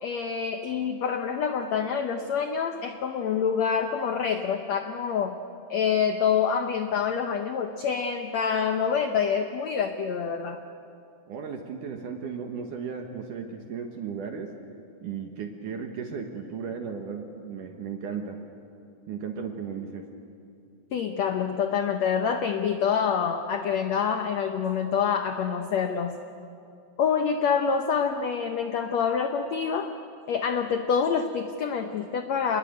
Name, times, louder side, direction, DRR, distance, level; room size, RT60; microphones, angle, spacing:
voice 1, 0.0-5.4 5.7-10.6 20.9-26.2 27.0-29.9 30.3-32.6, left 7 dB, 85° left, 7 dB, 1.5 m, -26 dB
voice 2, 11.3-14.6 15.0-18.4 19.1-20.1, right 6 dB, 65° right, 4 dB, 2.6 m, -35 dB
27.0 x 21.0 x 9.5 m, 2.6 s
omnidirectional pair, 4.5 m